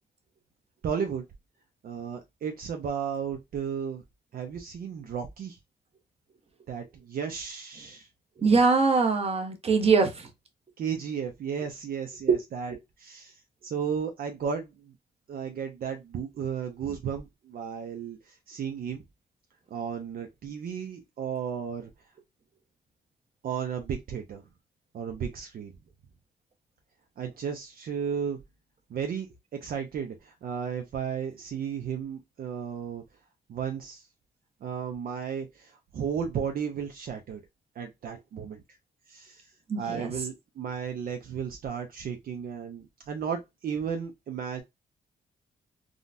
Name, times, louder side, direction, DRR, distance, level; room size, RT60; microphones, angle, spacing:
voice 1, 0.8-1.2 1.8-4.0 4.3-5.6 6.7-8.1 10.8-14.9 15.3-19.0 19.7-21.9 23.4-24.4 24.9-25.7 27.2-28.4 28.9-29.3 29.5-33.0 33.5-34.1 34.6-37.4 37.8-38.6 39.1-44.6, right 7 dB, 60° right, 0.5 m, -34 dB
voice 2, 8.4-10.3 39.7-40.1, right 4 dB, 35° right, 0.8 m, -23 dB
3.7 x 2.1 x 2.5 m
cardioid pair, 90°, 17 cm